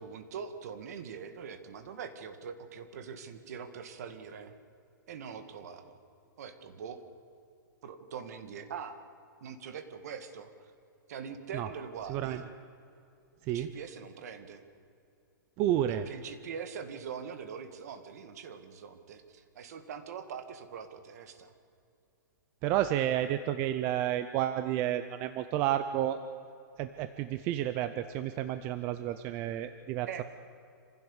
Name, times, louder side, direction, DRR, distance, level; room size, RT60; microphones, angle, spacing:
voice 1, 0.0-4.5 5.1-6.0 6.4-7.0 7.8-9.0 9.4-10.5 11.1-12.4 13.5-14.6 15.9-21.5 30.1-30.2, right 6 dB, 50° right, 9 dB, 1.9 m, -43 dB
voice 2, 12.1-12.4 13.4-13.7 15.6-16.1 22.6-26.2 26.8-30.2, right 12 dB, 20° right, 10 dB, 0.5 m, -31 dB
27.0 x 15.5 x 7.2 m, 2.6 s
hypercardioid pair, 170°, 11 cm